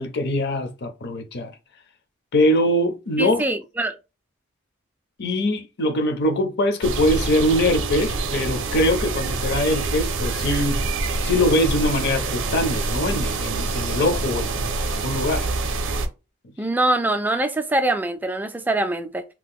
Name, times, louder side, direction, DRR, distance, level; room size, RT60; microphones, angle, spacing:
voice 1, 0.0-1.5 2.3-3.4 5.2-10.9 11.2-15.5, left 1 dB, 50° left, 0.6 m, -22 dB
voice 2, 3.2-4.0 16.6-19.2, right 1 dB, 10° right, 0.3 m, -23 dB
sound 1, 6.8-16.1, right 3 dB, 60° right, 0.5 m, -26 dB
2.9 x 2.1 x 3.6 m
head